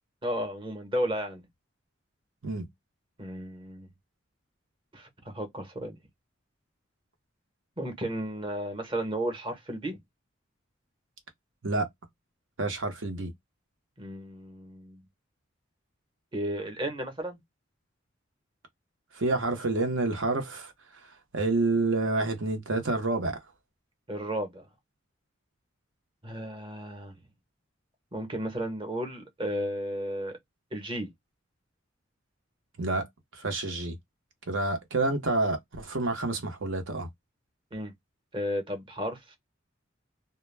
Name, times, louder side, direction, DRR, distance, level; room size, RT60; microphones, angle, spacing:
voice 1, 0.2-1.4 3.2-3.9 4.9-6.0 7.8-10.0 14.0-15.0 16.3-17.4 24.1-24.7 26.2-27.1 28.1-30.4 30.7-31.1 37.7-37.9 38.3-39.4, equal, 25° right, 0.8 m, -33 dB
voice 2, 12.6-13.3 19.1-20.7 21.3-23.4 32.8-33.1 33.3-34.0 34.5-37.1, right 2 dB, 70° right, 0.8 m, -28 dB
2.2 x 2.1 x 3.2 m
head